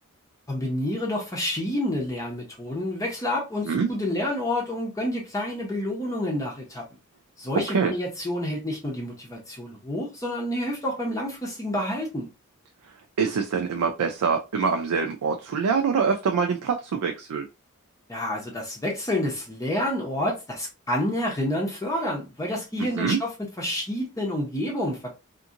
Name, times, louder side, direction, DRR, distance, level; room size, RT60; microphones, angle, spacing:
voice 1, 0.5-6.8 7.4-12.3 18.1-23.3 23.6-25.2, left 1 dB, 15° left, 0.6 m, -29 dB
voice 2, 13.2-17.4 22.8-23.2, right 5 dB, 80° right, 0.4 m, -25 dB
2.7 x 2.5 x 2.4 m
head